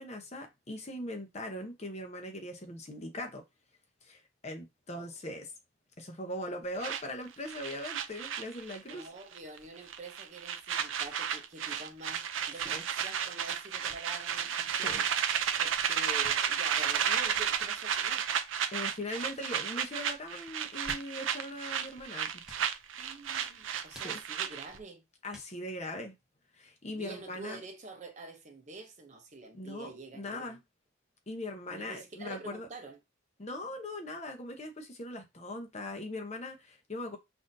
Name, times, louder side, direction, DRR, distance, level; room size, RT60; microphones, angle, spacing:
voice 1, 0.0-3.4 4.0-5.5 6.0-9.1 12.7-12.8 14.7-15.0 18.7-22.4 23.9-24.2 25.2-26.1 26.6-27.6 29.5-30.6 31.3-32.7 33.4-37.2, left 1 dB, 35° left, 0.9 m, -40 dB
sound 1, 6.8-9.1 9.3-9.6 9.9-24.8, right 8 dB, 80° right, 0.4 m, -33 dB
sound 2, 7.6-8.2 8.5-8.6 9.6-9.9 11.0-11.3 12.3-12.7 13.6-14.0 14.6-15.0 15.7-16.5 17.7-18.0 18.6-19.0 19.2-19.5 20.5-21.3 22.4-22.7 23.9-24.5 25.3-25.8, equal, 5° right, 1.0 m, -55 dB
voice 2, 8.9-15.1 15.6-18.2 23.0-25.0 26.9-30.6 31.7-33.0, right 3 dB, 35° right, 0.7 m, -47 dB
5.8 x 2.7 x 2.7 m
head